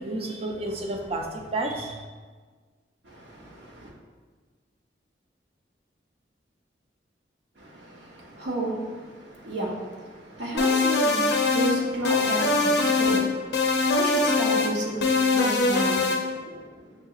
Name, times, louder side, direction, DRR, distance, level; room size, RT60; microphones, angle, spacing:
voice 1, 0.0-2.0, right 2 dB, 35° right, 0.4 m, -31 dB
voice 2, 3.0-3.9 7.6-17.0, right 1 dB, 80° right, 0.8 m, -33 dB
sound 1, 10.6-11.8 12.0-13.2 13.5-14.7 15.0-16.2, left 3 dB, 65° left, 0.5 m, -22 dB
6.2 x 2.8 x 2.4 m
head